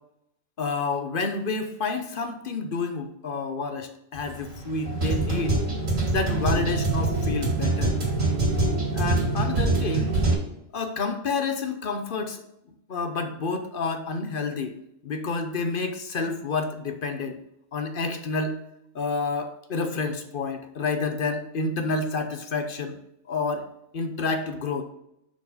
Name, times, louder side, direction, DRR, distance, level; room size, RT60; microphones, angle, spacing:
voice 1, 0.6-5.6 6.1-7.9 8.9-10.1 10.7-12.4 12.9-14.7 15.0-17.4 17.7-18.5 18.9-23.0 23.3-23.6 23.9-24.8, left 4 dB, 50° left, 7 dB, 0.8 m, -29 dB
sound 1, 4.2-10.3, right 2 dB, 70° right, 3.0 m, -25 dB
6.7 x 4.7 x 5.3 m, 0.81 s
omnidirectional pair, 1.4 m